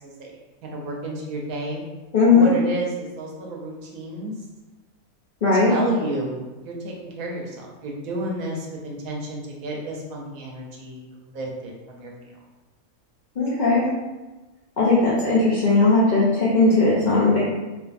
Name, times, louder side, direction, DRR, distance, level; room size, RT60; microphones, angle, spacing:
voice 1, 0.6-1.8 2.3-4.3 5.6-12.1, right 1 dB, 90° right, -1 dB, 1.1 m, -31 dB
voice 2, 2.1-2.5 5.4-5.7 13.4-13.9 14.8-17.4, left 3 dB, 70° left, -8 dB, 0.4 m, -18 dB
2.5 x 2.5 x 2.4 m, 1.2 s
omnidirectional pair, 1.4 m